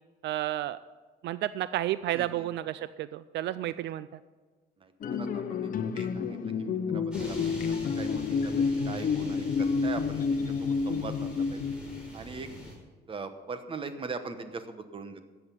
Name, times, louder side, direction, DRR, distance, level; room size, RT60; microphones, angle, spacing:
voice 1, 0.2-0.8 1.2-4.2, right 13 dB, 75° right, 15 dB, 0.4 m, -31 dB
voice 2, 2.1-2.5 4.8-4.9 5.2-7.6 8.0-11.7 12.1-12.5 13.1-15.2, right 4 dB, 30° right, 10 dB, 1.1 m, -41 dB
sound 1, 5.0-12.1, left 5 dB, 50° left, 0.9 m, -30 dB
sound 2, 7.1-12.7, equal, 5° right, 4.4 m, -45 dB
13.0 x 8.0 x 6.9 m, 1.4 s
cardioid pair, 135°, 18 cm